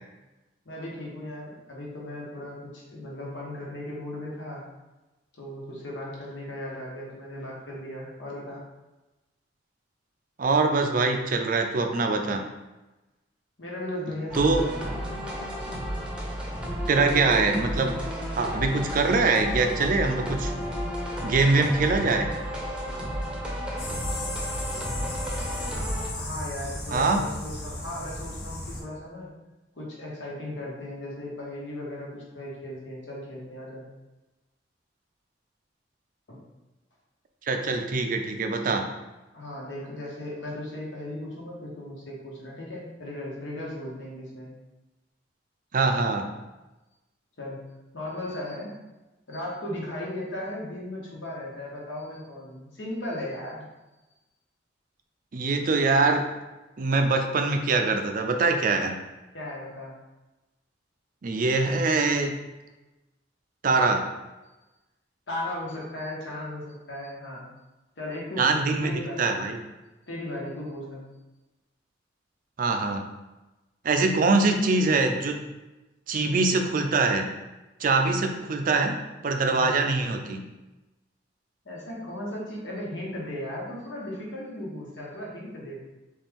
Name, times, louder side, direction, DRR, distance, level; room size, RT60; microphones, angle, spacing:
voice 1, 0.6-4.6 5.3-8.6 13.6-15.0 15.6-15.7 26.2-29.3 29.8-33.8 36.3-36.4 39.3-44.5 47.4-47.6 47.9-48.7 49.3-53.6 59.3-59.9 65.3-67.5 68.0-69.3 70.1-71.1 79.5-79.7 81.6-85.8, left 1 dB, 80° left, -4 dB, 1.3 m, -36 dB
voice 2, 10.4-12.5 14.3-14.6 16.9-18.0 18.4-20.5 21.2-22.3 26.9-27.2 37.5-38.9 45.7-46.3 55.3-56.3 56.8-59.0 61.2-62.4 63.6-64.1 68.4-69.6 72.6-73.1 73.8-75.4 76.1-77.3 77.8-80.5, right 3 dB, 45° right, 5 dB, 0.4 m, -23 dB
sound 1, 14.3-26.1, equal, 5° right, 0.7 m, -32 dB
sound 2, 23.8-28.8, left 1 dB, 60° left, 1.2 m, -35 dB
4.3 x 3.3 x 3.6 m, 1.1 s
head